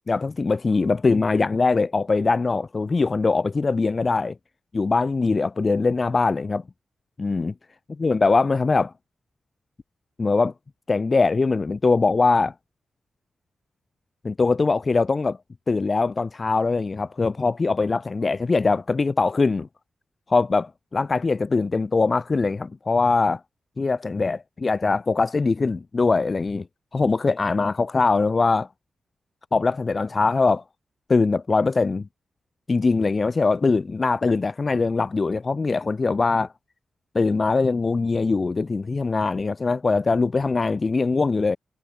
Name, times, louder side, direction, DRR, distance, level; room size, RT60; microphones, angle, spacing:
voice 1, 0.1-4.3 4.7-6.6 7.2-7.5 8.0-8.9 10.2-10.5 10.9-12.5 14.2-15.4 15.7-19.7 20.3-23.4 23.8-26.7 26.9-28.7 29.5-30.6 31.1-32.1 32.7-36.5 37.1-41.6, left 4 dB, 30° left, 0.5 m, -22 dB
wide cardioid pair, 140°, 0 cm